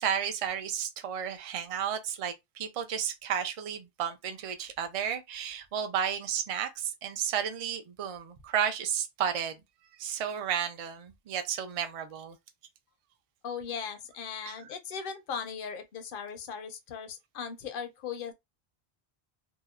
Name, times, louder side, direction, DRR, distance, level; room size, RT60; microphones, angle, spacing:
voice 1, 0.0-9.5 10.0-12.4, right 8 dB, 55° right, 0.4 m, -32 dB
voice 2, 13.4-18.3, left 6 dB, 65° left, 0.7 m, -38 dB
2.7 x 2.0 x 2.3 m
omnidirectional pair, 1.1 m